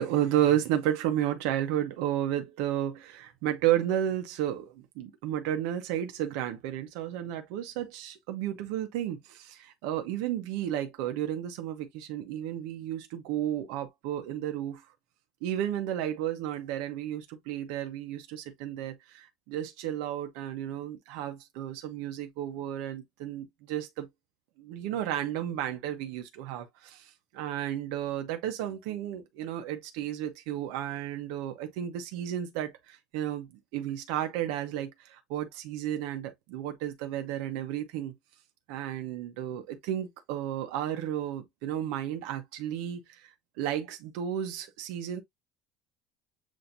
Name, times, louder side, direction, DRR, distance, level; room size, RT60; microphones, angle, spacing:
voice 1, 0.0-14.9 15.4-24.1 24.6-38.1 38.7-45.2, right 11 dB, 80° right, 0.9 m, -32 dB
7.5 x 2.7 x 2.6 m
cardioid pair, 175°, 0 cm